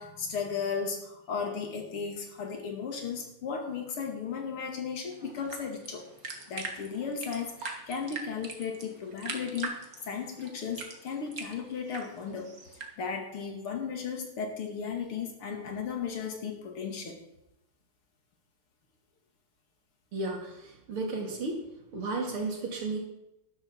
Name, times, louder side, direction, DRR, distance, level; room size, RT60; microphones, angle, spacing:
voice 1, 0.0-6.1 6.5-12.5 13.0-17.2, left 6 dB, 85° left, 3 dB, 3.0 m, -35 dB
sound 1, 5.1-12.9, right 3 dB, 45° right, 2.1 m, -42 dB
voice 2, 20.1-21.6 21.9-23.0, right 3 dB, 75° right, 0 dB, 3.6 m, -33 dB
12.5 x 11.5 x 4.5 m, 0.84 s
omnidirectional pair, 2.4 m